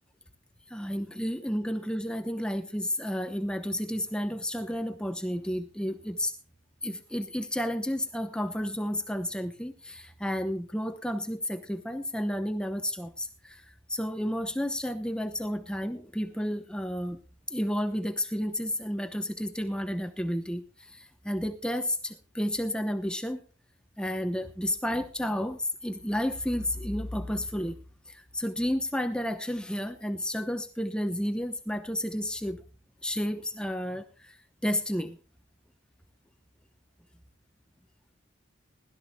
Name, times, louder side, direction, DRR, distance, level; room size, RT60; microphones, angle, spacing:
voice 1, 0.7-6.3 6.8-17.2 17.5-23.4 24.0-27.8 28.1-32.6 33.0-34.4 34.6-35.2, equal, 5° left, 0.8 m, -31 dB
20.0 x 13.0 x 2.3 m
head